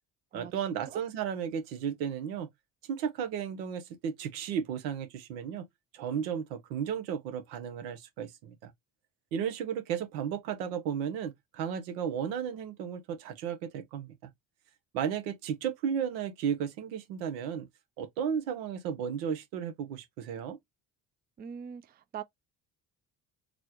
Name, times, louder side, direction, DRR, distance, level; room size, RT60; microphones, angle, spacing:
voice 1, 0.3-2.5 2.8-5.7 5.9-8.7 9.3-14.3 14.9-17.7 18.0-20.6, right 8 dB, 90° right, 0.9 m, -34 dB
voice 2, 21.4-22.2, right 8 dB, 20° right, 0.4 m, -42 dB
4.1 x 2.2 x 2.9 m
hypercardioid pair, 60°, 48 cm